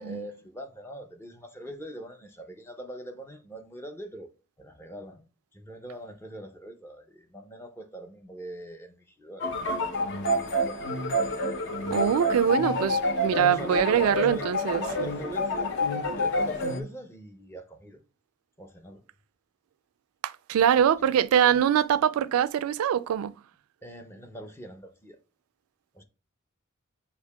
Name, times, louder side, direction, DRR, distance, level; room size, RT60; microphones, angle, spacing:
voice 1, 0.0-4.3 4.6-5.2 5.5-10.8 13.2-15.7 16.2-18.0 18.6-19.0 23.8-25.2 25.9-26.0, right 1 dB, 10° left, 0.4 m, -42 dB
sound 1, 9.4-16.8, left 1 dB, 60° left, 0.7 m, -28 dB
voice 2, 11.9-14.8 20.2-23.3, right 9 dB, 80° right, 0.3 m, -23 dB
6.5 x 2.8 x 2.2 m
head